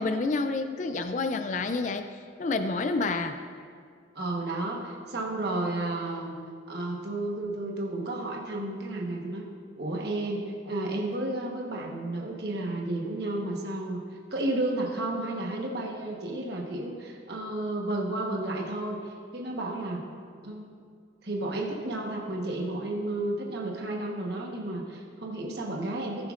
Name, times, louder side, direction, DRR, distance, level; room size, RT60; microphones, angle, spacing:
voice 1, 0.0-2.0 2.4-3.4, left 3 dB, 40° left, 8 dB, 0.4 m, -28 dB
voice 2, 4.1-6.3 6.7-9.5 9.8-14.0 14.3-20.0 20.4-20.7 21.2-26.3, right 2 dB, 60° right, -1 dB, 1.2 m, -32 dB
18.5 x 7.2 x 2.5 m, 2.1 s
head